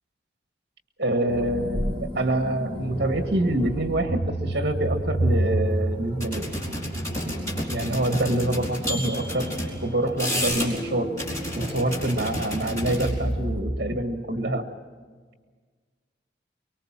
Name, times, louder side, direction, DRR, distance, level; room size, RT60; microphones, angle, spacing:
voice 1, 1.0-6.5 7.7-9.5 9.8-11.1 11.5-14.7, right 1 dB, 55° right, 5 dB, 1.7 m, -26 dB
sound 1, 1.3-13.6, right 1 dB, 35° left, 6.2 m, -31 dB
sound 2, 6.2-9.7 10.1-10.8 11.2-13.1, equal, 15° left, 4.8 m, -31 dB
24.5 x 23.0 x 7.5 m, 1.5 s
head